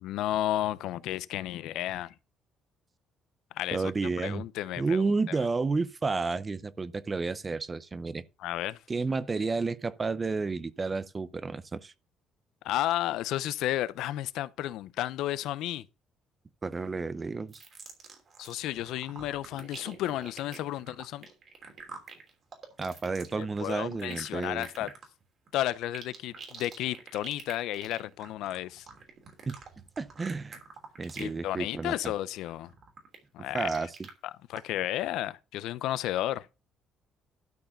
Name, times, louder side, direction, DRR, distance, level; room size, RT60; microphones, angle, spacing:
voice 1, 0.0-2.1 3.5-3.9 4.2-5.0 8.4-8.8 12.6-15.8 18.4-21.3 23.4-24.9 25.5-28.9 31.2-32.7 33.3-33.7 34.5-36.5, left 13 dB, 80° left, 0.6 m, -32 dB
voice 2, 3.7-4.4 4.8-8.2 8.9-11.9 16.6-17.6 22.8-24.7 29.5-29.6 30.0-30.6 31.0-32.1 33.5-34.1, right 4 dB, 20° right, 0.5 m, -31 dB
sound 1, 17.5-18.6 18.8-31.4 31.7-32.1 32.5-34.1 34.6-34.7, right 4 dB, 35° right, 3.1 m, -46 dB
12.0 x 4.8 x 6.6 m
cardioid pair, 165°, 0 cm